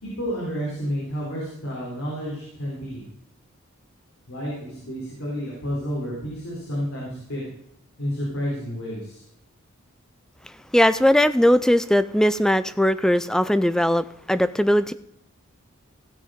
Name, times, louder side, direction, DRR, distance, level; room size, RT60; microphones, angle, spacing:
voice 1, 0.0-3.0 4.3-7.4 8.0-9.2, equal, 70° left, -5 dB, 4.2 m, -30 dB
voice 2, 10.7-14.9, equal, 5° left, 13 dB, 0.4 m, -19 dB
16.0 x 6.5 x 5.0 m, 0.76 s
head